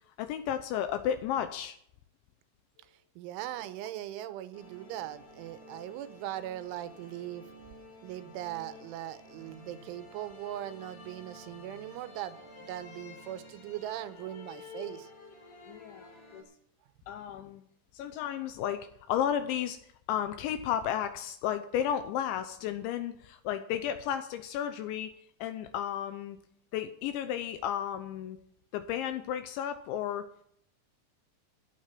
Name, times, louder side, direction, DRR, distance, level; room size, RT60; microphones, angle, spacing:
voice 1, 0.2-1.8 15.7-16.4 17.1-17.6 17.9-19.8 20.1-25.1 25.4-26.4 26.7-28.4 28.7-30.3, left 10 dB, 80° left, 9 dB, 2.9 m, -33 dB
voice 2, 3.2-7.4 8.0-15.1, right 13 dB, 80° right, 12 dB, 3.2 m, -40 dB
sound 1, 4.5-16.4, left 2 dB, 40° left, 4.3 m, -51 dB
14.5 x 9.6 x 5.9 m, 0.66 s
omnidirectional pair, 5.7 m